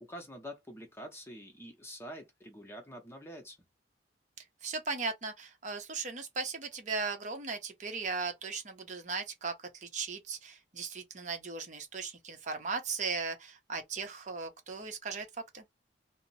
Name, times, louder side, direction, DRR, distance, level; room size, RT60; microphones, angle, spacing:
voice 1, 0.0-3.6, equal, 15° left, 0.8 m, -46 dB
voice 2, 4.6-15.3 15.5-15.6, right 4 dB, 45° right, 0.7 m, -37 dB
2.8 x 2.0 x 4.0 m
head